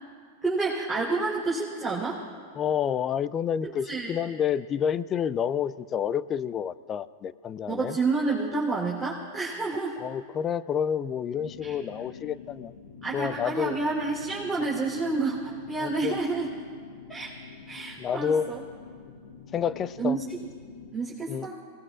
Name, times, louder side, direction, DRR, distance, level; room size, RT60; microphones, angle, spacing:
voice 1, 0.4-2.2 3.6-4.1 7.7-10.0 11.6-11.8 13.0-16.5 17.1-17.3 17.7-18.6 20.0-20.2 20.9-21.6, right 3 dB, 5° right, -8 dB, 3.9 m, -29 dB
voice 2, 2.6-8.0 10.0-12.8 13.1-13.7 15.8-16.2 18.0-18.5 19.5-20.2 21.3-21.5, left 8 dB, 30° left, 17 dB, 0.4 m, -29 dB
sound 1, 11.3-20.9, left 5 dB, 80° left, 1.4 m, -47 dB
28.5 x 19.5 x 2.5 m, 2.1 s
hypercardioid pair, 105°, 0 cm